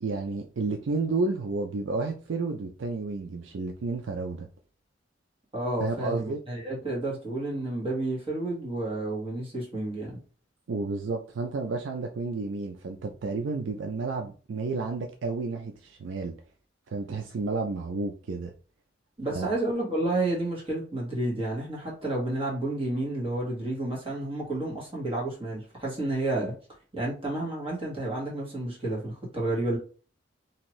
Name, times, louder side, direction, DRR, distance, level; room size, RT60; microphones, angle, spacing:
voice 1, 0.0-4.5 5.8-6.4 10.7-16.3 16.9-18.5 19.3-19.5, right 3 dB, 70° right, 3 dB, 0.4 m, -31 dB
voice 2, 5.5-10.2 19.2-26.5 26.9-29.8, right 2 dB, 30° right, -4 dB, 1.4 m, -30 dB
2.8 x 2.5 x 3.0 m, 0.37 s
head